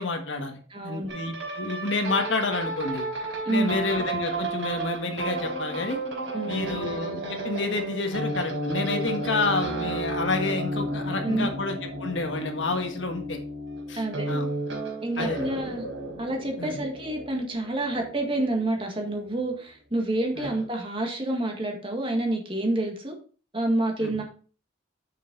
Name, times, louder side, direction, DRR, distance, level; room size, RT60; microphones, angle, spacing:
voice 1, 0.0-0.6 0.8-3.1 3.5-6.0 6.4-13.4 13.9-14.5 15.2-15.5 16.6-16.8 20.4-20.5 24.0-24.1, left 3 dB, 75° left, 5 dB, 1.5 m, -29 dB
voice 2, 0.7-1.1 3.4-3.8 6.3-6.8 11.2-11.5 13.9-14.4 15.0-15.8 16.2-23.1 23.5-24.2, right 1 dB, 25° right, 2 dB, 1.8 m, -28 dB
sound 1, 1.1-19.5 20.4-20.7, right 2 dB, 85° right, 4.2 m, -33 dB
6.5 x 6.5 x 3.9 m, 0.39 s
head